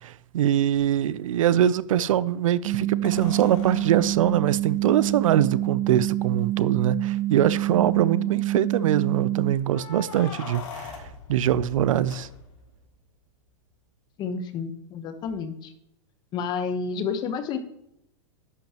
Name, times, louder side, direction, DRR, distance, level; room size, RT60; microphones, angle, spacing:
voice 1, 0.0-11.0 11.3-12.3, right 11 dB, 85° right, 0.5 m, -23 dB
sound 1, 2.6-9.5, right 15 dB, 45° right, 0.7 m, -27 dB
sound 2, 3.0-5.4 6.4-6.5 6.8-6.9 7.4-7.9 9.6-12.8 15.3-15.4, left 5 dB, 75° left, 3.1 m, -42 dB
voice 2, 14.2-15.7 16.3-17.6, left 5 dB, 25° left, 1.0 m, -30 dB
11.0 x 9.0 x 2.9 m
supercardioid pair, 155°, 16 cm